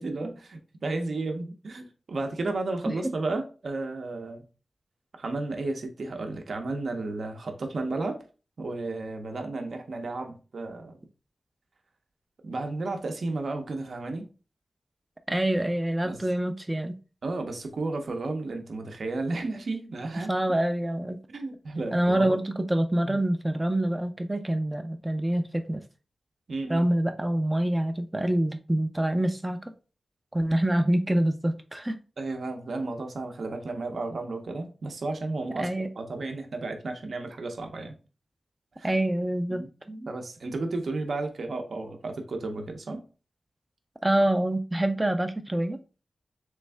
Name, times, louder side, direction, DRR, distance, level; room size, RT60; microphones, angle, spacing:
voice 1, 0.0-4.4 5.2-8.2 8.6-11.0 12.4-14.2 16.0-16.2 17.2-20.3 21.3-22.4 23.0-23.2 26.5-26.9 32.2-35.7 36.0-37.9 38.8-38.9 39.5-39.7 40.1-43.0, right 2 dB, 70° right, 0.6 m, -33 dB
voice 2, 15.3-16.9 20.3-21.2 21.9-25.8 26.7-29.6 30.3-32.0 35.6-35.9 38.8-39.6 39.9-40.0 44.0-45.8, right 1 dB, 15° right, 0.4 m, -26 dB
3.4 x 3.2 x 3.3 m
wide cardioid pair, 90°, 0 cm